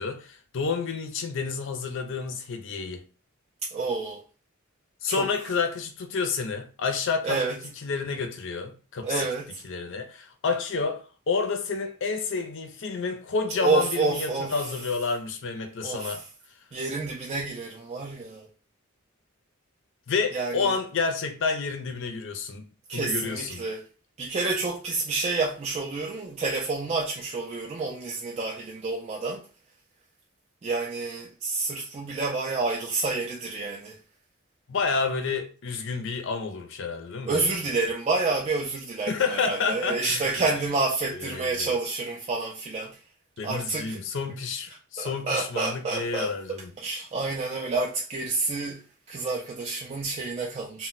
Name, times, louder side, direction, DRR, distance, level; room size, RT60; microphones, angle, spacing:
voice 1, 0.0-3.1 5.0-7.4 7.8-9.2 9.6-16.2 20.1-22.6 22.9-23.7 34.7-37.8 39.1-40.5 41.1-41.8 43.4-46.7, left 4 dB, 60° left, 0.5 m, -30 dB
voice 2, 3.6-4.2 5.1-5.3 7.2-7.6 9.0-9.6 13.6-14.7 15.8-16.2 16.7-18.5 20.3-20.8 22.9-23.9 24.2-29.4 30.6-34.0 37.2-43.0 43.4-44.0 45.0-50.9, right 3 dB, 30° right, 0.3 m, -29 dB
2.1 x 2.1 x 3.8 m
head